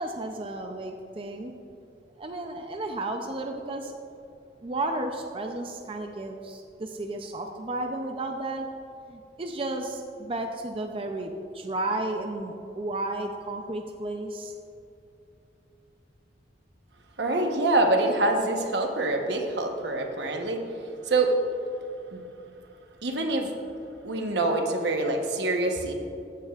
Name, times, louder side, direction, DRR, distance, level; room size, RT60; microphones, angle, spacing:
voice 1, 0.0-1.5 2.2-3.9 4.6-8.7 9.1-14.6, right 2 dB, 30° right, 4 dB, 0.5 m, -33 dB
voice 2, 17.2-20.6 21.1-21.3 22.1-22.2 23.0-23.5 24.0-25.9, right 2 dB, 75° right, 3 dB, 1.1 m, -25 dB
15.0 x 8.9 x 2.4 m, 2.7 s
head